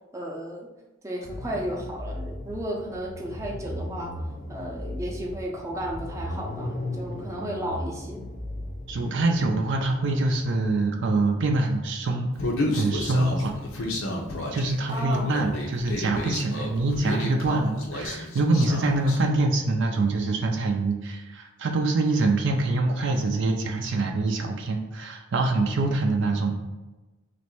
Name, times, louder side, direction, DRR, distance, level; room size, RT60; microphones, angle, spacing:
voice 1, 0.1-0.7 1.0-4.2 4.5-8.3 14.9-15.3, right 1 dB, 15° right, -2 dB, 0.6 m, -33 dB
sound 1, 1.2-10.6, left 1 dB, 40° left, 0.6 m, -37 dB
voice 2, 8.9-12.3 12.7-13.9 14.5-26.6, right 2 dB, 60° right, 3 dB, 0.4 m, -25 dB
Human voice, 12.4-19.2, left 1 dB, 75° left, 0.7 m, -31 dB
3.1 x 2.6 x 4.4 m, 1.1 s
head